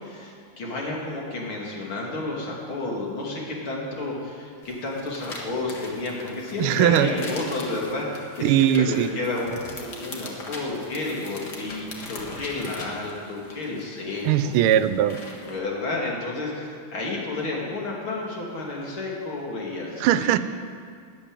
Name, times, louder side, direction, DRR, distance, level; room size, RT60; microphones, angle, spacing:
voice 1, 0.0-14.5 15.4-20.3, left 2 dB, 70° left, -2 dB, 3.3 m, -31 dB
sound 1, 4.6-15.6, left 2 dB, 50° left, 2.1 m, -41 dB
voice 2, 6.6-7.1 8.4-9.1 14.2-15.2 20.0-20.4, right 11 dB, 85° right, 13 dB, 1.5 m, -20 dB
13.0 x 8.9 x 8.9 m, 2.2 s
omnidirectional pair, 2.4 m